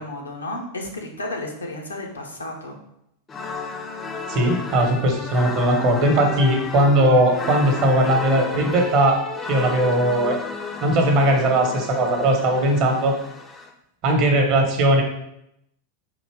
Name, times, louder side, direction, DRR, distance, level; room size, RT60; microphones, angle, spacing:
voice 1, 0.0-2.7, left 1 dB, 75° left, 1 dB, 0.8 m, -32 dB
sound 1, 3.3-13.7, left 4 dB, 20° left, 0.5 m, -33 dB
voice 2, 4.3-9.2 9.5-10.4 10.8-13.1 14.0-15.0, right 1 dB, 45° right, 3 dB, 1.0 m, -19 dB
3.9 x 2.8 x 4.6 m, 0.80 s
figure-of-eight pair, 90°, 0 cm